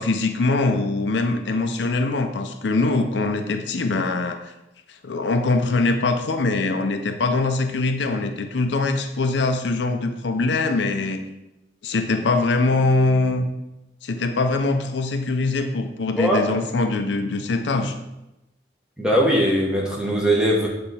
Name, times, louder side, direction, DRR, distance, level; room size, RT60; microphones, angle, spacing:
voice 1, 0.0-4.4 4.9-11.2 11.8-13.5 14.0-18.0, left 3 dB, 80° left, 7 dB, 0.5 m, -22 dB
voice 2, 16.2-16.6 19.0-20.7, equal, 5° right, -3 dB, 1.0 m, -20 dB
7.1 x 3.4 x 4.1 m, 0.93 s
head